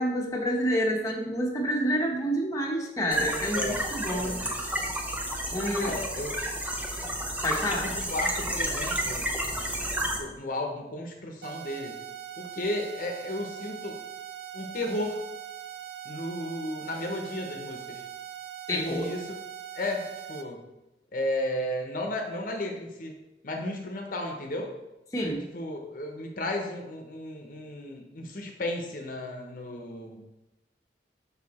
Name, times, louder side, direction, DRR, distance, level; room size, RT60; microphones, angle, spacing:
voice 1, 0.0-4.3 5.5-5.9 7.4-7.8 18.7-19.1 25.1-25.4, equal, 20° left, -2 dB, 0.9 m, -28 dB
sound 1, 3.1-10.2, right 1 dB, 10° right, 0.7 m, -31 dB
voice 2, 4.1-4.6 5.8-6.4 7.5-9.2 10.2-12.0 12.4-14.0 14.5-15.2 16.0-18.0 18.7-19.2 19.8-20.6 21.1-23.1 23.4-24.7 25.5-30.2, left 1 dB, 50° left, 2 dB, 0.8 m, -34 dB
sound 2, 11.4-20.4, right 10 dB, 65° right, 0.6 m, -41 dB
5.5 x 4.7 x 4.2 m, 0.95 s
head